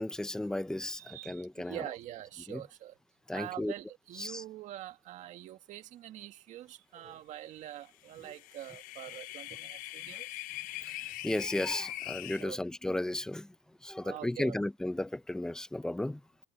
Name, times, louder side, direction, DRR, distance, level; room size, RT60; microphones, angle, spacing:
voice 1, 0.0-1.9 2.5-2.6 3.3-3.7 4.2-4.4 7.0-7.1 10.8-13.5 13.8-16.2, left 1 dB, 5° left, 0.9 m, -34 dB
voice 2, 0.9-3.0 3.3-10.4 12.4-12.6 14.0-14.6, right 13 dB, 45° right, 2.0 m, -45 dB
sound 1, 8.2-12.4, left 16 dB, 55° left, 1.0 m, -42 dB
cardioid pair, 155°, 17 cm